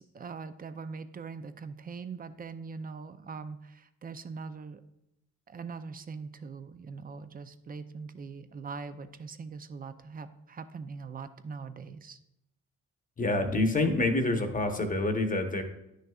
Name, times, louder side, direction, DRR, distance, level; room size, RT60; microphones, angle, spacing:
voice 1, 0.0-4.8 5.5-12.2, right 5 dB, 30° right, 12 dB, 0.5 m, -42 dB
voice 2, 13.2-15.6, left 2 dB, 25° left, 5 dB, 1.0 m, -27 dB
10.0 x 6.4 x 2.3 m, 0.86 s
cardioid pair, 90°, 30 cm